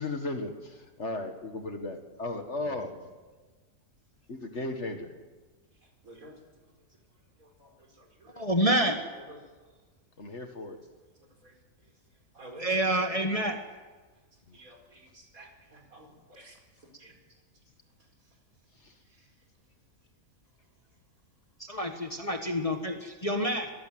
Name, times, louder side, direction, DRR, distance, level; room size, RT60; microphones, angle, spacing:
voice 1, 0.0-2.9 4.3-5.1 10.2-10.8 14.5-14.6 18.8-18.9, left 2 dB, 50° left, 6 dB, 1.9 m, -36 dB
voice 2, 8.4-9.0 12.6-13.6 21.6-23.7, right 1 dB, 25° left, 4 dB, 1.5 m, -28 dB
voice 3, 12.3-12.7 14.5-16.5 17.0-17.1, right 1 dB, 65° right, 2 dB, 5.1 m, -50 dB
23.5 x 15.0 x 9.3 m, 1.4 s
omnidirectional pair, 1.6 m